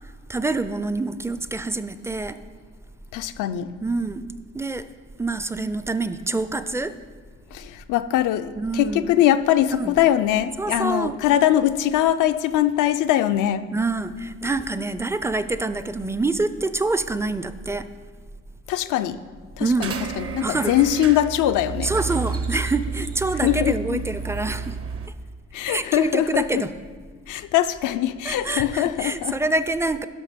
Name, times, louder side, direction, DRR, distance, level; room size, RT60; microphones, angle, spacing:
voice 1, 0.3-2.4 3.8-4.2 4.5-4.8 5.2-6.9 8.6-9.1 9.7-10.0 10.6-11.2 13.7-17.9 19.6-19.9 20.4-20.8 21.8-24.8 25.7-26.7 28.2-30.1, right 3 dB, 10° right, 12 dB, 0.4 m, -26 dB
voice 2, 3.1-3.7 7.5-13.6 18.7-19.2 19.6-21.9 23.4-24.0 25.5-26.6 27.3-29.4, left 12 dB, 85° left, 10 dB, 0.5 m, -22 dB
sound 1, 19.8-25.1, right 5 dB, 50° right, 0.7 m, -31 dB
11.0 x 6.0 x 5.1 m, 1.5 s
cardioid pair, 90°, 30 cm